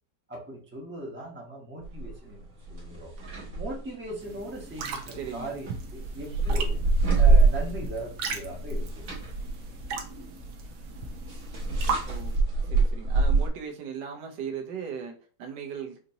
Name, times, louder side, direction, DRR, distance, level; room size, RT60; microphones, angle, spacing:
voice 1, 0.3-3.1 3.5-6.8 7.2-8.9, right 1 dB, 10° right, -2 dB, 0.9 m, -39 dB
sound 1, 1.8-2.1 2.6-3.7 4.7-8.0 8.3-13.5, right 3 dB, 55° right, 1.6 m, -25 dB
sound 2, 4.2-12.4, right 4 dB, 70° right, 1.2 m, -38 dB
voice 2, 5.1-5.5 12.1-12.3 12.6-16.0, right 7 dB, 90° right, 2 dB, 1.4 m, -38 dB
5.0 x 2.6 x 2.8 m, 0.41 s
omnidirectional pair, 1.8 m